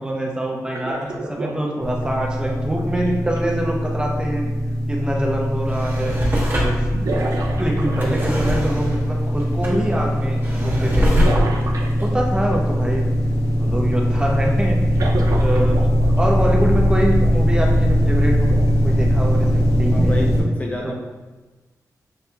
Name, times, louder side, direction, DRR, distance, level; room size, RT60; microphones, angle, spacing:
voice 1, 0.0-4.5 4.9-6.2 6.6-6.8 7.6-11.3 12.0-13.1 13.6-15.9 16.1-18.6 18.8-20.2 20.8-20.9, right 1 dB, 15° right, -1 dB, 0.7 m, -25 dB
sound 1, 0.7-3.4 5.3-5.4 6.9-8.7 11.2-12.5 14.9-16.4 17.2-17.3 18.5-18.7 20.0-20.1, right 2 dB, 65° right, 0.5 m, -29 dB
sound 2, 1.8-20.4, equal, 55° left, 1.1 m, -20 dB
Drawer open or close, 5.4-13.1 13.6-13.7, equal, 30° right, 1.1 m, -24 dB
voice 2, 19.9-20.9, left 1 dB, 25° left, -1 dB, 0.4 m, -28 dB
6.6 x 2.8 x 2.3 m, 1.2 s
wide cardioid pair, 95°, 6 cm